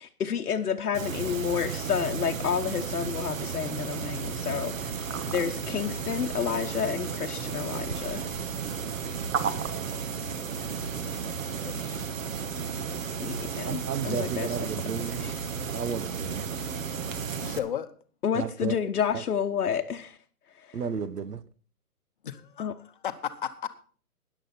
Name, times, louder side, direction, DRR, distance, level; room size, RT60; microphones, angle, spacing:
voice 1, 0.0-8.3 13.2-14.7 15.2-15.3 18.2-20.2 20.6-20.8 22.6-22.7, left 7 dB, 80° left, 1.1 m, -30 dB
sound 1, 0.9-17.6, right 6 dB, 60° right, 1.4 m, -33 dB
voice 2, 9.5-10.0 13.7-15.2 15.7-16.5 18.3-18.8 19.1-19.2 20.7-21.4, right 6 dB, 90° right, 1.1 m, -33 dB
voice 3, 11.4-12.2 17.4-17.9 22.2-23.7, left 9 dB, 35° left, 0.9 m, -35 dB
13.5 x 10.0 x 4.2 m
hypercardioid pair, 160°, 45 cm